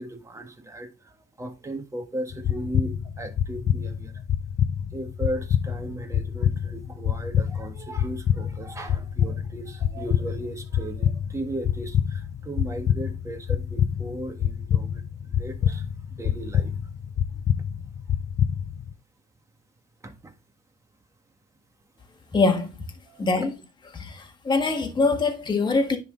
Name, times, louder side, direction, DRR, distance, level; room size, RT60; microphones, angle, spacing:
voice 1, 0.0-4.2 4.9-16.8 20.0-20.3 23.1-23.4, right 1 dB, 15° right, 1.5 m, -36 dB
sound 1, 2.3-18.9, left 9 dB, 45° left, 0.5 m, -27 dB
voice 2, 22.3-22.8 23.2-23.5 23.9-26.0, left 3 dB, 25° left, 1.5 m, -23 dB
9.9 x 3.9 x 3.7 m
cardioid pair, 110°, 17 cm